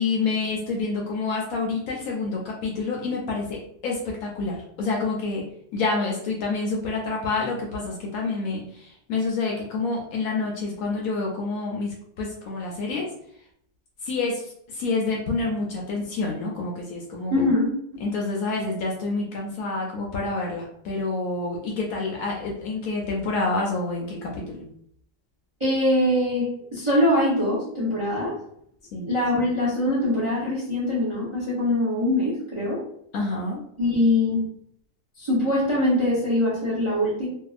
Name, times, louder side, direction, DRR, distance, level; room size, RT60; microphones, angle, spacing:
voice 1, 0.0-5.4 5.7-13.1 14.0-17.5 18.0-24.7 28.9-29.1 33.1-33.6, left 3 dB, 70° left, -1 dB, 0.9 m, -28 dB
voice 2, 17.3-17.7 17.9-18.0 25.6-28.4 29.0-32.8 33.8-34.4 35.2-37.3, left 1 dB, 35° right, -7 dB, 0.5 m, -23 dB
2.7 x 2.3 x 2.4 m, 0.69 s
omnidirectional pair, 1.8 m